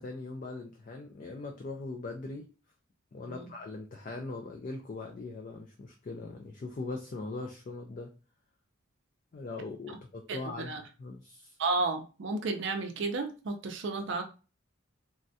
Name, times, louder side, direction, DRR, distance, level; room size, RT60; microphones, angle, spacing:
voice 1, 0.0-2.5 3.1-8.1 9.3-11.6, left 3 dB, 40° left, 0.3 m, -40 dB
voice 2, 11.6-14.2, right 3 dB, 55° right, 0.4 m, -32 dB
3.5 x 2.1 x 2.6 m
head